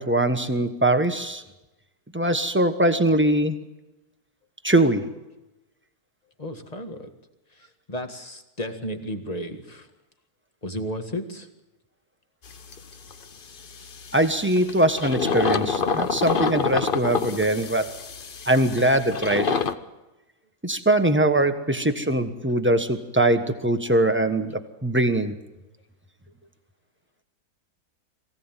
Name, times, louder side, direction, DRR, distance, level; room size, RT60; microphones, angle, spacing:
voice 1, 0.0-1.4 2.1-3.6 4.6-5.1 14.1-17.9 18.5-19.6 20.6-25.3, right 1 dB, 10° right, 7 dB, 1.1 m, -22 dB
voice 2, 6.4-7.1 7.5-9.9 10.6-11.5 21.6-21.8, equal, 25° left, 6 dB, 1.8 m, -34 dB
sound 1, 12.4-13.2 13.6-19.7, left 5 dB, 40° left, 0.9 m, -27 dB
23.0 x 16.5 x 9.1 m, 1.0 s
omnidirectional pair, 1.7 m